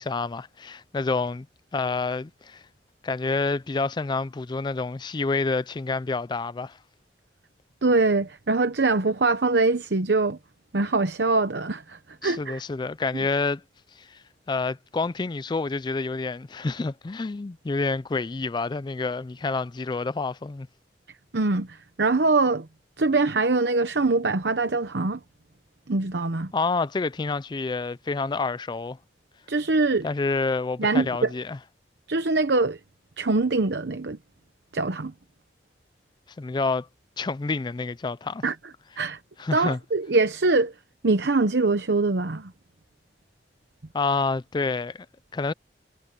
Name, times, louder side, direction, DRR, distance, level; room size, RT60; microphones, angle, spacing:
voice 1, 0.0-1.5 1.7-2.6 3.0-6.8 12.2-13.6 14.0-20.7 26.5-29.0 30.0-31.6 36.4-36.9 37.2-38.4 39.4-39.8 43.9-45.1 45.3-45.5, left 3 dB, 25° left, 0.4 m, -28 dB
voice 2, 7.8-10.4 10.7-12.6 21.3-22.7 23.0-25.2 25.9-26.5 29.5-30.1 30.8-31.3 32.1-32.8 33.2-34.2 34.7-35.1 38.4-38.5 39.0-39.2 39.5-40.7 41.0-42.5, right 3 dB, 70° right, 0.9 m, -23 dB
head